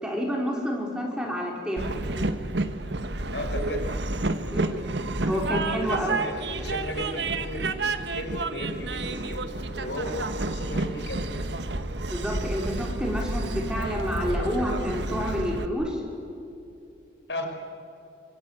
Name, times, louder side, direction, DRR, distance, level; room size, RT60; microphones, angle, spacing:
voice 1, 0.0-1.8 4.5-4.9 5.2-6.2 12.1-16.0, equal, 5° right, -1 dB, 4.8 m, -29 dB
Train, 1.8-15.7, right 2 dB, 75° right, 1.5 m, -30 dB
voice 2, 3.3-3.9 5.3-5.4 5.8-9.4 9.8-10.1 10.4-11.5 17.3-17.5, left 1 dB, 75° left, 4 dB, 5.1 m, -36 dB
25.5 x 25.5 x 9.0 m, 2.7 s
head